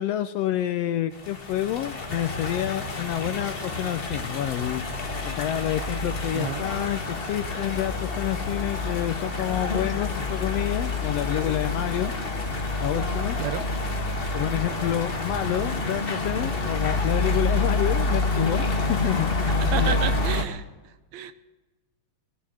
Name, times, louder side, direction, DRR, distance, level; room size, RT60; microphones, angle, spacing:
voice 1, 0.0-4.8 5.2-12.1 12.8-13.4 14.3-19.3 19.7-20.0, left 12 dB, 75° left, 10 dB, 1.5 m, -28 dB
sound 1, 1.1-20.4, left 3 dB, 35° left, 0.8 m, -28 dB
voice 2, 6.3-6.7 13.4-13.7 19.7-21.3, right 10 dB, 75° right, 12 dB, 1.9 m, -31 dB
20.5 x 7.2 x 7.6 m, 1.2 s
omnidirectional pair, 3.3 m